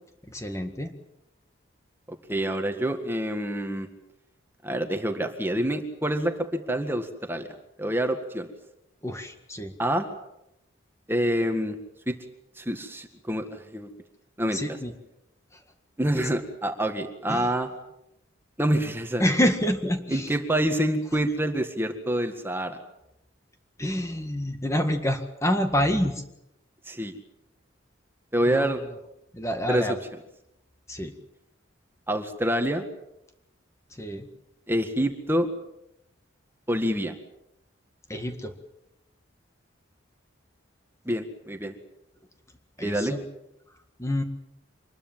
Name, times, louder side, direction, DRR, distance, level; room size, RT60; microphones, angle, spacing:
voice 1, 0.3-0.9 9.0-9.7 14.5-14.9 16.1-16.3 17.3-17.5 19.2-20.4 23.8-26.2 28.5-28.8 29.3-30.0 30.9-31.1 34.0-34.3 38.1-38.5 42.8-43.2 44.0-44.2, equal, 15° left, 6 dB, 1.8 m, -27 dB
voice 2, 2.3-3.9 4.6-7.5 7.8-8.5 9.8-10.1 11.1-11.8 12.1-12.2 12.6-13.9 14.4-14.6 16.0-17.7 18.6-19.3 20.1-22.8 26.9-27.2 28.3-28.8 29.7-30.0 32.1-32.9 34.7-35.5 36.7-37.1 41.1-41.7 42.8-43.2, right 1 dB, 10° right, 6 dB, 1.8 m, -27 dB
25.5 x 21.0 x 7.5 m, 0.84 s
head